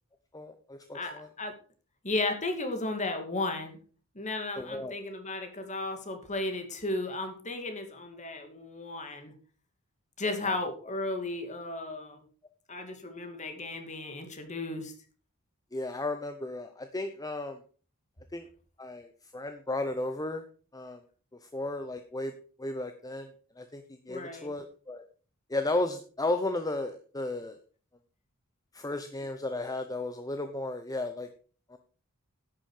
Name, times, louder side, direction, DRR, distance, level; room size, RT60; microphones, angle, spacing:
voice 1, 0.3-1.3 4.6-4.9 10.4-10.6 15.7-17.6 18.3-18.5 18.8-20.5 20.7-21.0 21.4-22.3 22.6-25.0 25.5-27.6 28.7-31.3 31.7-31.8, left 2 dB, 15° left, 8 dB, 0.8 m, -34 dB
voice 2, 0.9-1.5 2.0-3.8 4.1-9.3 10.2-12.2 12.7-14.9 24.1-24.5, left 2 dB, 35° left, 6 dB, 2.4 m, -34 dB
11.0 x 8.9 x 5.0 m, 0.40 s
head